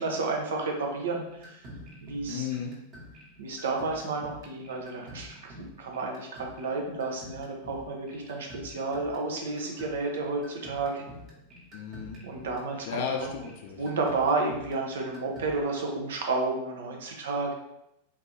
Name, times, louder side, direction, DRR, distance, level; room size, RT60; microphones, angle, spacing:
voice 1, 0.0-1.6 2.0-2.5 3.4-11.0 12.2-13.0 13.8-17.5, right 3 dB, 60° right, 1 dB, 0.8 m, -31 dB
sound 1, 1.3-15.5, equal, 35° right, 1.3 m, -49 dB
voice 2, 2.3-2.7 11.7-12.2 12.9-13.8, left 7 dB, 50° left, 2 dB, 0.5 m, -34 dB
3.6 x 3.5 x 2.8 m, 0.83 s
figure-of-eight pair, 90°, 0 cm